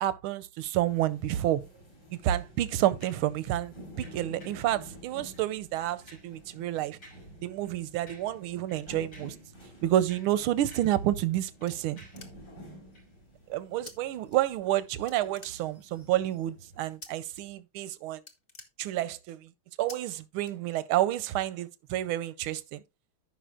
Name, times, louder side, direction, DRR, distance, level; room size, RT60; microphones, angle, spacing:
voice 1, 0.0-1.6 2.2-7.0 7.4-9.3 9.8-12.0 13.5-18.2 18.8-19.4 19.8-22.8, right 13 dB, 90° right, 1.5 m, -29 dB
sound 1, 0.8-16.9, equal, 50° left, 4.6 m, -51 dB
sound 2, 3.0-3.3 4.0-4.7 5.2-5.5 5.8-6.3 7.0-7.3 7.6-7.8 8.1-8.4 8.7-9.4 9.9-11.0 11.3-12.3 12.9-13.1, equal, 75° left, 7.0 m, -55 dB
sound 3, 11.7-12.7 13.9-14.0 14.3-14.8 15.1-16.0 17.0-17.4 17.7-17.9 18.2-19.3 19.9-20.0 20.4-21.1, left 3 dB, 35° left, 1.1 m, -49 dB
14.5 x 5.6 x 2.4 m
omnidirectional pair, 2.3 m